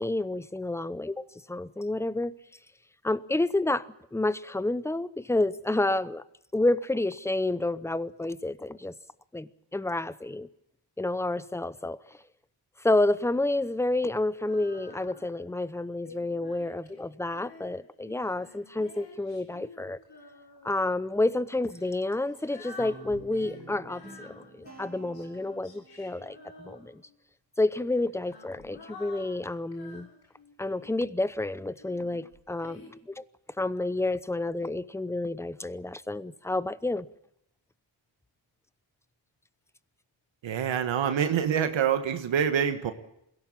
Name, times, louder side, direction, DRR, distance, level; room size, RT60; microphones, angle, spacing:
voice 1, 0.0-2.3 3.0-6.2 6.5-8.9 9.3-10.5 11.0-12.2 12.8-20.0 20.6-27.0 27.6-30.1 30.6-33.2 33.6-37.1, left 2 dB, 5° left, 0.8 m, -29 dB
Female singing, 14.5-15.5 16.0-20.9 21.6-27.2 28.0-31.1 31.8-32.9, left 4 dB, 65° left, 7.8 m, -51 dB
Guitar, 22.8-26.1, right 3 dB, 20° right, 4.9 m, -49 dB
voice 2, 40.4-42.9, right 8 dB, 75° right, 1.6 m, -26 dB
21.5 x 17.0 x 8.7 m
cardioid pair, 75°, 46 cm